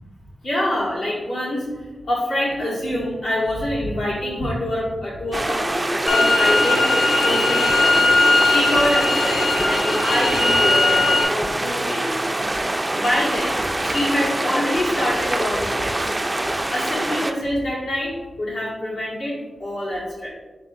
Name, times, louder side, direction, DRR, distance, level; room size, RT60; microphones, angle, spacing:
voice 1, 0.4-6.9 7.2-8.1 8.4-12.2 12.9-16.1 16.7-20.3, left 1 dB, 85° left, -7 dB, 1.4 m, -25 dB
sound 1, 5.3-17.3, right 1 dB, 20° right, 0.3 m, -25 dB
sound 2, 6.1-11.2, left 2 dB, 40° left, 0.5 m, -19 dB
5.5 x 3.7 x 2.6 m, 1.2 s
cardioid pair, 70°, 0 cm